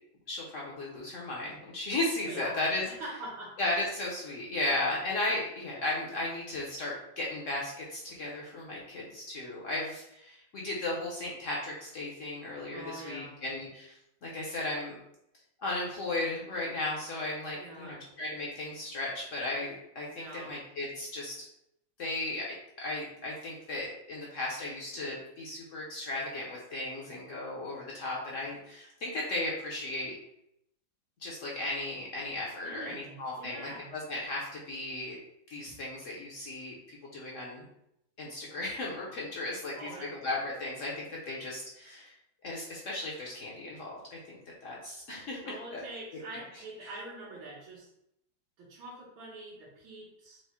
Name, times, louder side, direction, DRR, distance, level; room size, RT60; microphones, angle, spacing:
voice 1, 0.3-2.9 3.6-14.0 14.2-15.0 15.6-21.3 22.0-22.5 22.8-30.1 31.2-35.2 35.5-37.7 38.2-42.1 42.4-45.8, left 2 dB, 60° left, -4 dB, 0.8 m, -35 dB
voice 2, 2.3-2.6 2.8-3.6 12.7-13.4 17.5-18.1 20.1-20.5 32.6-34.0 39.8-40.1 45.4-47.9 48.6-50.4, right 2 dB, 80° right, -7 dB, 1.9 m, -44 dB
4.7 x 2.0 x 4.2 m, 0.79 s
omnidirectional pair, 2.1 m